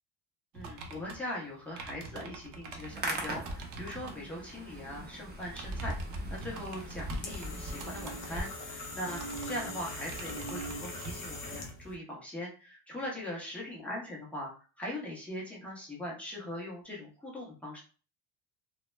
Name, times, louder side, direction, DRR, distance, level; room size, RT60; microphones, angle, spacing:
voice 1, 0.5-6.0 6.3-17.8, left 1 dB, 5° left, -4 dB, 0.8 m, -41 dB
sound 1, 0.5-4.2 5.3-11.2, right 3 dB, 60° right, 0.6 m, -46 dB
Hands, 2.7-8.4, right 1 dB, 25° right, 0.7 m, -40 dB
sound 2, 6.6-12.0, left 1 dB, 35° left, 0.5 m, -41 dB
2.2 x 2.0 x 3.1 m, 0.38 s
cardioid pair, 135°, 37 cm